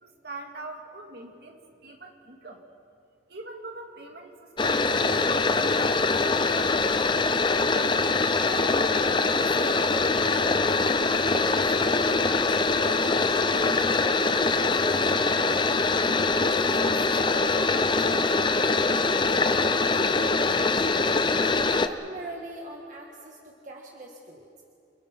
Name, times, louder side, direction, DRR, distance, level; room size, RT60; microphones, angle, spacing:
voice 1, 0.0-2.6 3.3-6.4, right 2 dB, 65° right, 2 dB, 2.5 m, -43 dB
sound 1, 4.6-21.9, left 3 dB, 25° left, 0.8 m, -23 dB
voice 2, 8.1-21.4 21.8-24.6, right 2 dB, 45° right, 0 dB, 1.8 m, -43 dB
28.5 x 22.5 x 5.7 m, 2.5 s
head